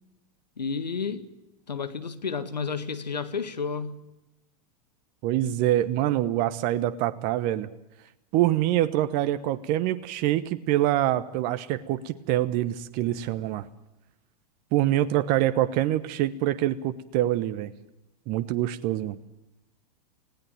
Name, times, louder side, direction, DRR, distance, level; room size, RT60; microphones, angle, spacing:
voice 1, 0.6-1.3 1.7-4.0, left 5 dB, 90° left, 12 dB, 1.7 m, -31 dB
voice 2, 5.2-7.7 8.3-13.7 14.7-17.7 18.3-19.2, right 13 dB, 45° right, 12 dB, 1.1 m, -25 dB
19.5 x 17.0 x 8.8 m, 0.93 s
hypercardioid pair, 100°, 21 cm